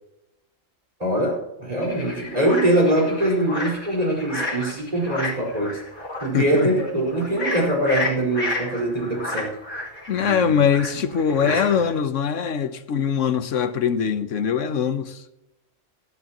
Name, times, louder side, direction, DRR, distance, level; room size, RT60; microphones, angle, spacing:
voice 1, 1.0-5.8 6.2-9.5 10.1-10.6 11.4-11.8, right 1 dB, 30° right, 5.2 m, -23 dB
sound 1, 1.8-12.0, left 2 dB, 40° left, 6.5 m, -31 dB
voice 2, 6.3-6.7 10.1-15.2, left 7 dB, 70° left, 1.3 m, -22 dB
19.0 x 13.0 x 3.0 m
omnidirectional pair, 1.4 m